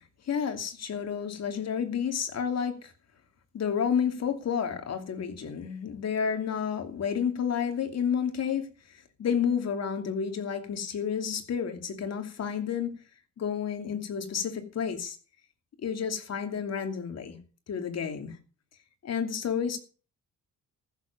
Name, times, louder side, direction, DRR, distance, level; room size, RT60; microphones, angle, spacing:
voice 1, 0.0-2.9 3.5-12.9 13.4-15.2 15.8-17.4 17.7-18.4 19.0-19.8, left 7 dB, 60° left, 2.7 m, -30 dB
14.5 x 7.4 x 6.8 m
cardioid pair, 90°, 30 cm